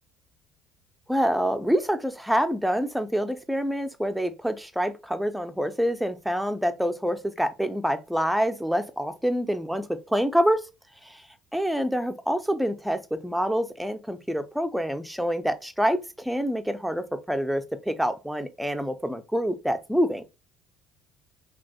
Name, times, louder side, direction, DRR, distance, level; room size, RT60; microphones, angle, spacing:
voice 1, 1.1-10.6 11.1-11.2 11.5-20.2, equal, ahead, 0.6 m, -26 dB
5.9 x 2.4 x 2.3 m
hypercardioid pair, 60°, 0 cm